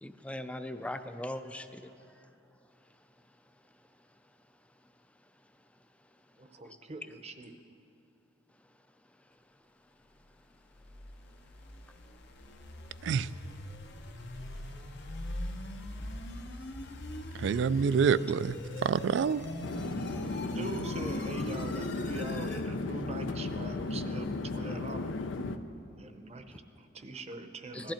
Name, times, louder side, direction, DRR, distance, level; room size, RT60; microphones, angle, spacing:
voice 1, 0.0-1.9 27.7-27.9, left 1 dB, 5° left, 9 dB, 0.4 m, -39 dB
voice 2, 6.4-7.5 20.4-25.1 26.0-27.9, right 2 dB, 35° right, 8 dB, 0.7 m, -42 dB
sound 1, 10.5-22.7, left 1 dB, 65° left, 1.0 m, -42 dB
sound 2, 13.5-23.4, equal, 35° left, 0.9 m, -56 dB
voice 3, 17.3-18.6 18.8-19.4, right 6 dB, 70° right, 17 dB, 0.3 m, -27 dB
sound 3, 19.6-25.6, left 3 dB, 80° left, 0.6 m, -35 dB
16.5 x 11.5 x 4.3 m, 2.8 s
head